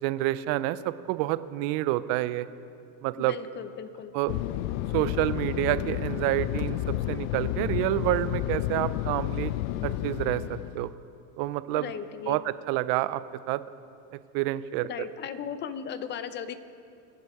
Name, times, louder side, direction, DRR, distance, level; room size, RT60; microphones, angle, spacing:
voice 1, 0.0-2.5 3.0-3.3 4.1-4.3 4.9-6.8 7.1-9.5 9.8-10.9 11.4-11.9 12.3-13.2 13.5-13.6 14.3-14.9, right 16 dB, 55° right, 15 dB, 0.6 m, -28 dB
voice 2, 3.2-4.1 11.7-12.4 14.9-16.6, left 8 dB, 25° left, 12 dB, 0.6 m, -37 dB
Fixed-wing aircraft airplane, 4.3-10.9, left 15 dB, 75° left, 0.5 m, -31 dB
24.5 x 8.2 x 4.8 m, 2.6 s
supercardioid pair, 140°, 44 cm